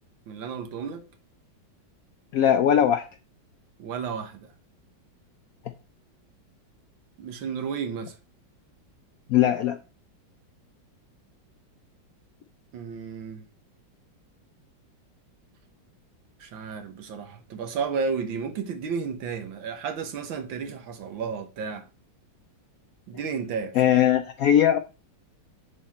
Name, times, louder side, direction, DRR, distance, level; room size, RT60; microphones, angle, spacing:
voice 1, 0.3-1.1 3.8-4.5 7.2-8.2 12.7-13.4 16.4-21.9 23.1-23.9, right 6 dB, 90° right, 1.8 m, -32 dB
voice 2, 2.3-3.0 9.3-9.8 23.8-24.8, left 10 dB, 75° left, 0.8 m, -20 dB
10.0 x 4.1 x 4.2 m
omnidirectional pair, 2.1 m